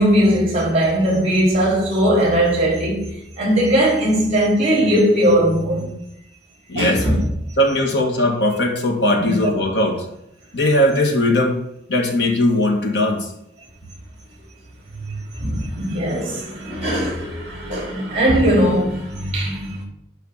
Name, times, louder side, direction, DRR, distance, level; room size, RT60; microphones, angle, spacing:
voice 1, 0.0-5.9 6.8-7.2 9.2-9.3 15.4-19.8, equal, 35° right, 4.6 m, -19 dB
voice 2, 6.7-7.0 7.6-10.1 10.5-11.6 11.9-13.3, left 1 dB, 70° left, 2.1 m, -19 dB
11.5 x 4.1 x 7.4 m
head